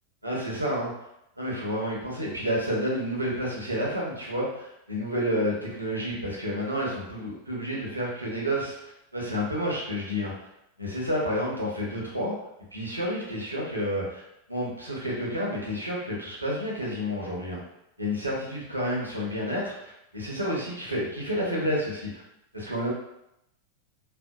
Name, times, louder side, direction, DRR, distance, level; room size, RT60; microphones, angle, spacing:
voice 1, 0.2-0.9 1.4-10.3 10.8-12.3 12.7-14.2 14.5-17.6 18.0-22.2 22.5-22.9, equal, 85° right, -4 dB, 0.7 m, -30 dB
2.6 x 2.1 x 2.2 m, 0.82 s
figure-of-eight pair, 90°, 0 cm